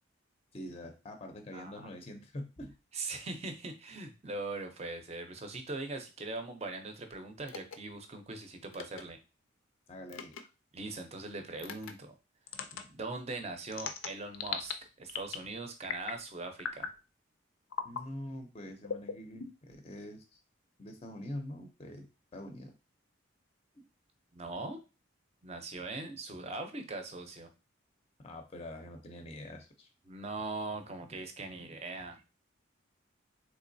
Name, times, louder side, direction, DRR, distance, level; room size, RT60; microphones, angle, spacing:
voice 1, 0.5-2.7 9.9-10.4 17.8-20.3 20.8-22.1 22.3-22.7 23.7-23.8 28.2-29.9, left 1 dB, 30° left, 5 dB, 0.5 m, -44 dB
voice 2, 2.9-9.2 10.7-12.1 12.7-14.7 15.0-16.9 24.3-24.8 25.4-27.5 30.1-32.2, right 3 dB, 30° right, 6 dB, 0.5 m, -41 dB
sound 1, 7.5-7.8 8.7-9.0 10.1-10.4 11.6-11.9 12.5-12.8 13.7-14.7 15.1-15.5 15.8-16.2 16.6-17.0 17.7-18.0 18.8-19.7, left 6 dB, 85° left, 0.4 m, -38 dB
3.6 x 3.0 x 2.6 m, 0.30 s
head